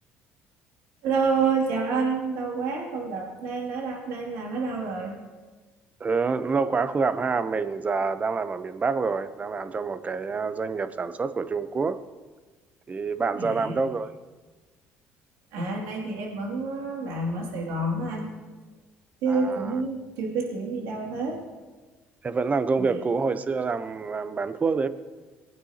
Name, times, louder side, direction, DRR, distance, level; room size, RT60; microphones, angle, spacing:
voice 1, 1.0-5.2 13.3-13.8 15.5-18.3 19.2-21.4 22.8-23.0, right 4 dB, 80° right, -1 dB, 2.5 m, -28 dB
voice 2, 6.0-12.0 12.9-14.1 19.3-19.6 22.2-24.9, right 4 dB, 30° right, 12 dB, 0.7 m, -27 dB
19.5 x 9.2 x 2.9 m, 1.3 s
supercardioid pair, 85°, 5 cm